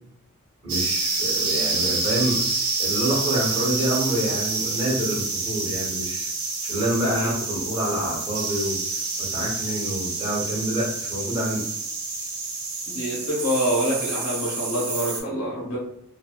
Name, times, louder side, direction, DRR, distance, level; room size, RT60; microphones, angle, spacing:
voice 1, 0.6-6.3 6.6-8.8 9.2-11.6, right 1 dB, 20° right, -6 dB, 1.0 m, -27 dB
sound 1, 0.7-15.2, right 3 dB, 70° right, 0.7 m, -28 dB
voice 2, 12.9-15.8, equal, 85° left, -6 dB, 1.0 m, -26 dB
2.6 x 2.1 x 2.4 m, 0.76 s
head